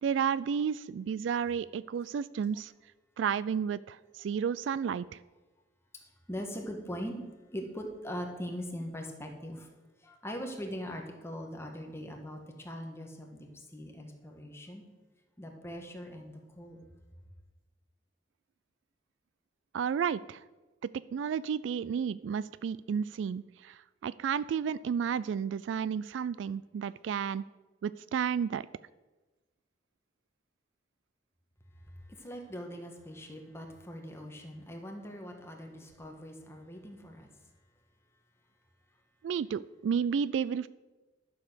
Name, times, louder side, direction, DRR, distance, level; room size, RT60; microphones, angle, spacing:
voice 1, 0.0-2.7 3.2-5.1 19.7-20.4 21.1-23.8 24.0-27.4 27.8-28.6 39.2-40.7, right 7 dB, 90° right, 18 dB, 0.3 m, -32 dB
voice 2, 6.3-7.2 7.5-9.7 10.0-14.8 15.4-16.8 31.9-37.3, equal, 15° left, 2 dB, 1.6 m, -41 dB
11.5 x 7.0 x 6.3 m, 1.2 s
head